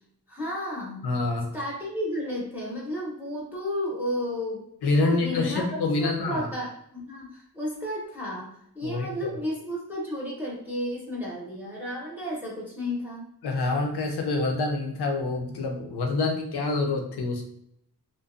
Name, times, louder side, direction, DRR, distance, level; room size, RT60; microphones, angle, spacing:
voice 1, 0.3-1.1 1.5-13.2, left 1 dB, 5° right, -5 dB, 0.6 m, -33 dB
voice 2, 1.0-1.5 4.8-6.5 8.8-9.4 13.4-17.4, left 3 dB, 85° left, 2 dB, 0.6 m, -27 dB
2.5 x 2.2 x 2.4 m, 0.74 s
wide cardioid pair, 105°, 39 cm